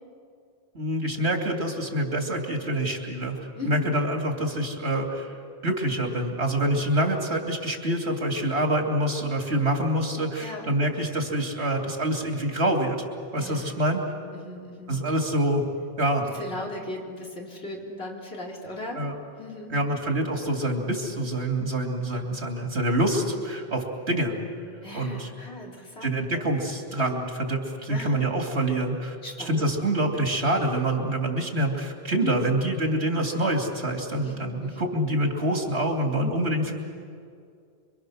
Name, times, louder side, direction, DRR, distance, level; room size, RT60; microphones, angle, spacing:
voice 1, 0.7-3.4 3.6-5.3 5.6-13.0 13.3-14.0 14.9-15.6 16.0-16.2 18.9-19.1 19.7-24.3 24.9-25.3 26.0-29.2 29.4-36.7, right 1 dB, 85° right, 2 dB, 3.0 m, -26 dB
voice 2, 3.6-3.9 10.4-10.7 13.4-13.7 14.1-15.0 16.2-19.0 19.4-19.7 22.1-22.4 24.8-26.4 27.9-28.2 29.2-29.7 32.2-32.3 34.1-34.8, left 1 dB, 80° left, -2 dB, 3.9 m, -38 dB
27.0 x 24.0 x 6.4 m, 2.3 s
omnidirectional pair, 1.1 m